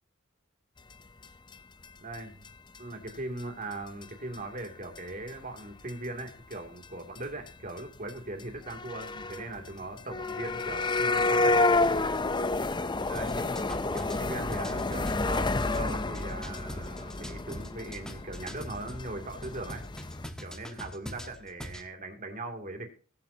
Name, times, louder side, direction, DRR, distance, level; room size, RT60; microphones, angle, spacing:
sound 1, 1.2-1.3 1.5-1.6 1.8-1.9 2.1-2.2 2.4-2.5 2.7-2.8 3.1-3.4 3.7-3.8 4.0-4.1 4.3-4.6 4.9-5.0 5.3-5.9 6.2-6.5 6.8-6.9 7.1-7.2 7.5-7.6 7.8-7.9 8.1-8.2 8.4-20.3, left 2 dB, 20° left, 0.6 m, -30 dB
voice 1, 2.0-2.5 2.8-11.7 13.1-19.9 20.4-22.9, right 2 dB, 40° right, 4 dB, 2.7 m, -40 dB
sound 2, 13.1-19.0 19.4-21.9, equal, 5° left, 1.3 m, -43 dB
21.5 x 8.5 x 2.8 m, 0.39 s
head